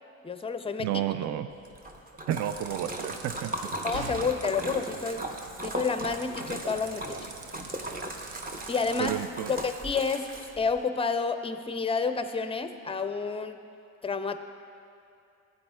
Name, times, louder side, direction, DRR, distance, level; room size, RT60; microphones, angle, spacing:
voice 1, 0.2-0.9 3.8-5.2 5.6-7.0 8.7-9.1 9.5-10.2 10.6-13.6 14.0-14.4, left 5 dB, 15° left, 9 dB, 0.5 m, -29 dB
voice 2, 0.8-1.5 2.3-3.7 9.0-9.5, right 11 dB, 45° right, 11 dB, 0.5 m, -31 dB
Splash splatter, 1.7-10.8, right 1 dB, 20° right, 0.9 m, -38 dB
sound 1, 2.5-9.1, right 4 dB, 65° right, 0.9 m, -45 dB
14.0 x 8.6 x 2.3 m, 2.6 s
hypercardioid pair, 65°, 39 cm